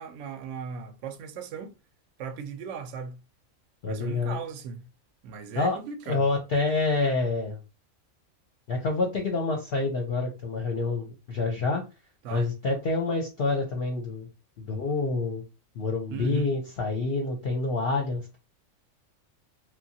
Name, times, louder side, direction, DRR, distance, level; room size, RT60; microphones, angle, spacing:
voice 1, 0.0-1.8 2.2-3.2 3.9-4.8 5.2-6.3 12.2-12.5 16.1-16.5, right 5 dB, 70° right, 0.8 m, -37 dB
voice 2, 3.8-4.4 5.5-5.8 6.1-7.6 8.7-11.8 12.3-14.3 14.6-15.4 15.8-18.4, left 3 dB, 55° left, 0.7 m, -27 dB
3.1 x 2.2 x 2.7 m
omnidirectional pair, 1.4 m